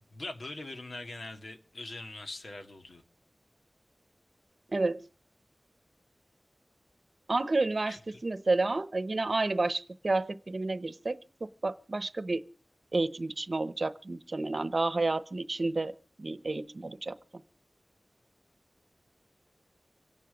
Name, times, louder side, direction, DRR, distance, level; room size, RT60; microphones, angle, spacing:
voice 1, 0.0-3.0 7.9-8.2, left 2 dB, 85° left, 1.9 m, -42 dB
voice 2, 4.7-5.1 7.3-7.9 8.2-11.2 11.6-12.4 12.9-15.9 16.2-17.1, right 2 dB, 55° right, 0.8 m, -30 dB
25.5 x 10.5 x 5.2 m
wide cardioid pair, 65°, 0 cm